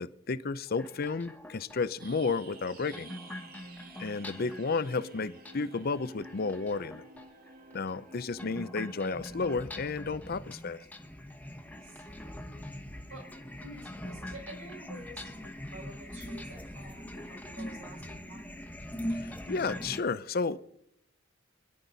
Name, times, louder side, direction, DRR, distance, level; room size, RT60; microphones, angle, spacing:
voice 1, 0.0-3.1 4.0-7.1 7.7-10.8 19.1-20.8, left 4 dB, 50° left, 0.6 m, -32 dB
sound 1, 0.7-20.0, left 1 dB, 10° left, 1.1 m, -43 dB
sound 2, 2.0-9.6, right 1 dB, 50° right, 2.1 m, -51 dB
voice 2, 11.7-12.5 13.1-13.2 13.6-18.7, right 1 dB, 85° right, 5.0 m, -49 dB
27.0 x 11.0 x 4.0 m
head